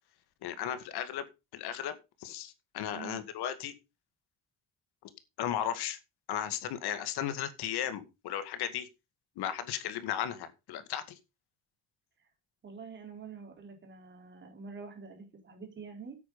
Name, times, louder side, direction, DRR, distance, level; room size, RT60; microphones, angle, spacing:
voice 1, 0.4-1.2 1.5-3.7 5.4-6.0 6.3-8.9 9.4-11.2, left 10 dB, 80° left, 11 dB, 2.1 m, -35 dB
voice 2, 2.9-3.2 12.6-16.2, right 5 dB, 30° right, 3 dB, 3.9 m, -46 dB
9.8 x 8.4 x 5.5 m, 0.26 s
cardioid pair, 180°, 39 cm